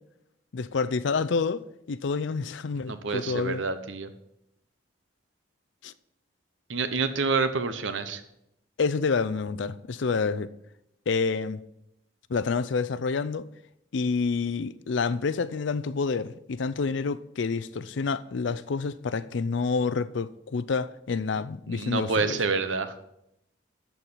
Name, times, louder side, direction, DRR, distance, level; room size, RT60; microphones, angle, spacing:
voice 1, 0.5-1.6 1.9-3.6 5.8-5.9 8.8-10.5 11.1-11.6 12.3-13.5 13.9-22.4, left 4 dB, 70° left, 0.5 m, -28 dB
voice 2, 2.9-4.1 6.7-8.2 21.7-22.9, right 4 dB, 80° right, 0.9 m, -28 dB
13.5 x 4.6 x 5.6 m
head